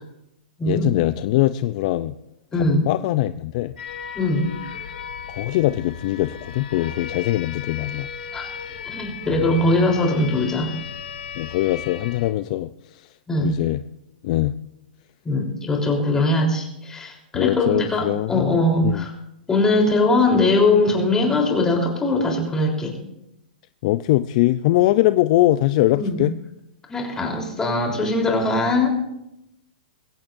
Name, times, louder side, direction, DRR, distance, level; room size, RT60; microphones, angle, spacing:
voice 1, 0.6-2.1 2.5-3.7 5.3-8.1 11.4-13.1 13.4-13.8 14.2-14.5 17.3-18.6 18.8-19.1 23.8-26.3, left 16 dB, 45° left, 12 dB, 0.5 m, -22 dB
voice 2, 2.5-2.9 4.2-4.5 8.3-8.5 8.8-10.7 13.3-13.5 15.2-19.1 19.5-23.0 25.9-26.2 26.9-29.0, left 2 dB, 10° left, 0 dB, 3.7 m, -21 dB
sound 1, 3.8-12.3, left 6 dB, 75° left, 2.4 m, -35 dB
21.5 x 16.0 x 2.6 m, 0.85 s
hypercardioid pair, 145°, 5 cm